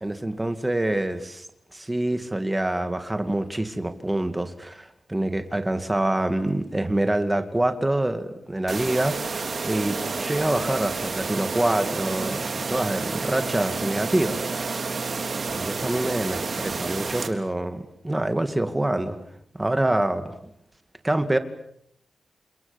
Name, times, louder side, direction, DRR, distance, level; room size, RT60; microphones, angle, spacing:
voice 1, 0.0-1.5 1.7-14.8 15.5-19.2 19.5-20.3 21.0-21.4, right 1 dB, 10° right, 8 dB, 2.4 m, -26 dB
sound 1, 8.7-17.3, right 4 dB, 45° right, 3.5 m, -30 dB
29.5 x 27.5 x 7.3 m, 0.73 s
wide cardioid pair, 170°, 0 cm